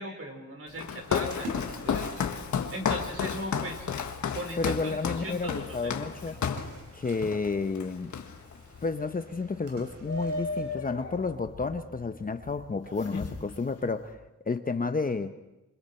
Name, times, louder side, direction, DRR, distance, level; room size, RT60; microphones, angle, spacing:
voice 1, 0.0-2.4 2.7-3.9 4.3-6.4, right 1 dB, 50° right, 3 dB, 4.4 m, -39 dB
Walk footsteps, 0.8-6.7 7.2-7.5 7.8-8.6, left 7 dB, 80° left, 1.5 m, -32 dB
Splash splatter, 0.8-10.7, equal, 80° right, 5.3 m, -48 dB
sound 1, 2.8-14.1, left 2 dB, 60° left, 3.1 m, -42 dB
voice 2, 4.6-6.4 6.9-8.1 8.8-14.1 14.5-15.3, left 4 dB, 30° left, 9 dB, 0.9 m, -31 dB
27.5 x 25.5 x 4.4 m, 0.94 s
wide cardioid pair, 125°, 29 cm